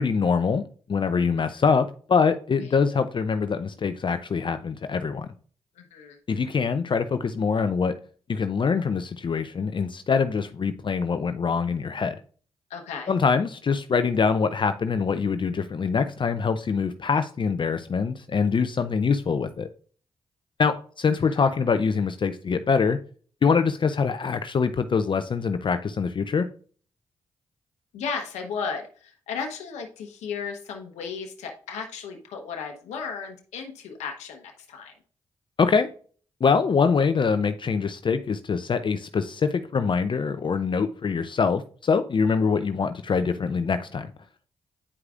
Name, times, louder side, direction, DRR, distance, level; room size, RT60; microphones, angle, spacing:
voice 1, 0.0-5.3 6.3-8.0 8.3-12.2 13.1-19.7 20.6-23.0 23.4-26.5 35.6-35.9 36.4-44.1, left 5 dB, 45° left, 10 dB, 0.5 m, -24 dB
voice 2, 5.8-6.2 12.7-13.1 21.3-21.4 27.9-34.9, left 5 dB, 85° left, 4 dB, 0.9 m, -35 dB
9.8 x 4.7 x 2.4 m, 0.44 s
supercardioid pair, 45°, 11 cm